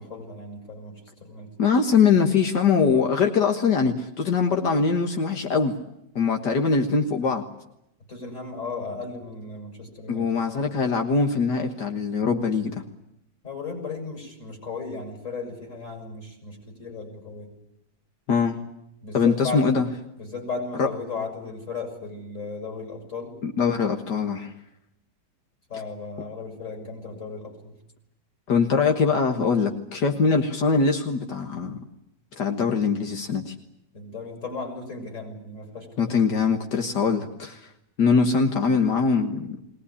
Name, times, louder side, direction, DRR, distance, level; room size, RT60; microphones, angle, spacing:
voice 1, 0.0-1.5 8.1-10.7 13.4-17.5 19.0-19.6 20.2-23.4 25.7-27.7 33.9-36.2, left 4 dB, 45° left, 3 dB, 6.6 m, -36 dB
voice 2, 1.6-5.8 6.2-7.4 10.1-12.8 18.3-18.6 19.1-19.9 20.8-20.9 23.4-24.5 28.5-31.8 32.4-33.5 36.0-37.6 38.0-39.6, left 5 dB, 75° left, 4 dB, 2.1 m, -22 dB
22.0 x 18.5 x 9.9 m, 0.82 s
omnidirectional pair, 1.9 m